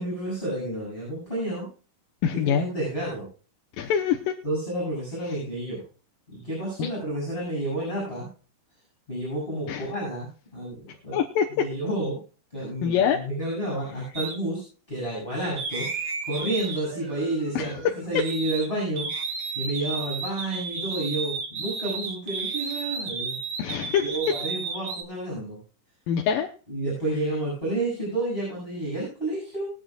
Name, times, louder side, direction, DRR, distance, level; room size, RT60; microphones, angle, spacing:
voice 1, 0.0-1.7 2.4-3.3 4.4-5.8 6.3-8.3 9.1-11.2 11.5-12.2 12.5-17.7 18.0-19.1 19.5-23.4 24.0-25.6 26.7-29.7, right 1 dB, 15° left, -3 dB, 7.8 m, -30 dB
voice 2, 2.2-2.7 3.8-4.4 6.8-6.9 9.7-9.9 11.1-11.7 12.8-13.2 17.6-17.8 23.6-24.1 26.1-26.5, left 8 dB, 85° left, 3 dB, 2.6 m, -24 dB
sound 1, 14.1-14.4 15.6-18.7 19.0-25.0, right 5 dB, 45° right, 1.9 m, -33 dB
21.5 x 9.3 x 2.4 m, 0.37 s
omnidirectional pair, 3.9 m